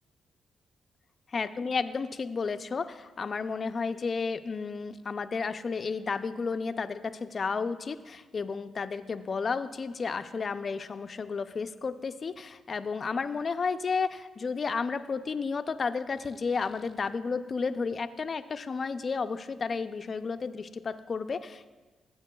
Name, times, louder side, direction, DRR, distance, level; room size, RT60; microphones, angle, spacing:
voice 1, 1.3-21.7, left 5 dB, 45° left, 11 dB, 0.4 m, -32 dB
14.0 x 7.4 x 2.3 m, 1.3 s
cardioid pair, 80°, 0 cm